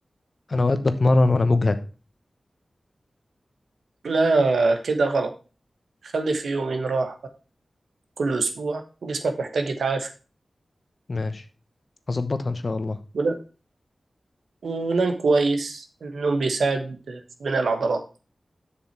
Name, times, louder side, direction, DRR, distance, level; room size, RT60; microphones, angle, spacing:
voice 1, 0.5-1.8 11.1-11.4 12.1-13.0, left 2 dB, 55° left, 11 dB, 0.9 m, -22 dB
voice 2, 4.0-5.3 6.0-7.1 8.2-10.1 13.1-13.4 14.6-18.0, right 3 dB, 90° right, 5 dB, 1.1 m, -24 dB
7.4 x 6.3 x 4.5 m, 0.34 s
cardioid pair, 40°, 0 cm